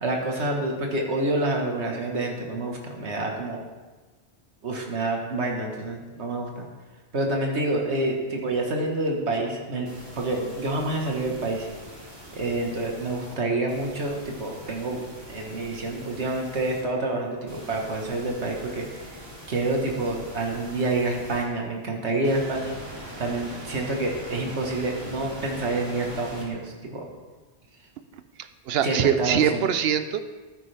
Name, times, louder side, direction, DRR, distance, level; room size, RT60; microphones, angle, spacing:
voice 1, 0.0-3.6 4.6-6.7 7.1-9.9 10.2-11.7 12.3-18.9 19.5-27.1 28.8-29.7, right 2 dB, 85° right, 1 dB, 1.8 m, -28 dB
sound 1, 9.9-13.3 13.7-16.8 17.5-21.4 22.2-26.5, equal, 25° right, 2.6 m, -42 dB
voice 2, 28.7-30.2, right 8 dB, 65° right, 10 dB, 0.9 m, -23 dB
12.5 x 9.9 x 3.4 m, 1.3 s
omnidirectional pair, 1.1 m